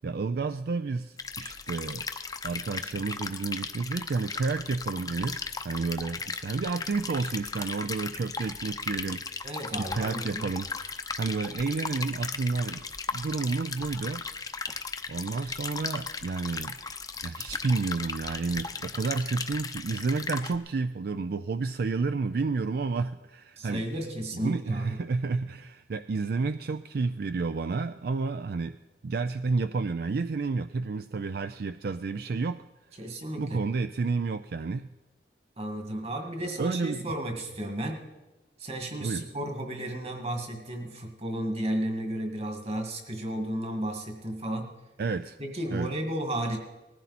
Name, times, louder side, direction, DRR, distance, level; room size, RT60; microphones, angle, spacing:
voice 1, 0.0-2.0 2.4-9.3 9.8-10.7 10.9-12.9 13.1-14.2 15.1-16.8 17.2-23.8 24.3-28.8 29.0-32.6 33.4-34.9 36.6-37.0 39.0-39.2 45.0-45.4 45.7-45.9, right 4 dB, 60° right, 11 dB, 0.4 m, -30 dB
sound 1, 1.2-20.6, left 4 dB, 20° left, 0.7 m, -36 dB
voice 2, 9.4-10.4 23.6-25.0 33.0-33.6 35.6-38.1 38.6-44.7 45.4-46.6, right 1 dB, 35° right, 3 dB, 2.0 m, -33 dB
19.0 x 14.5 x 4.2 m, 1.1 s
head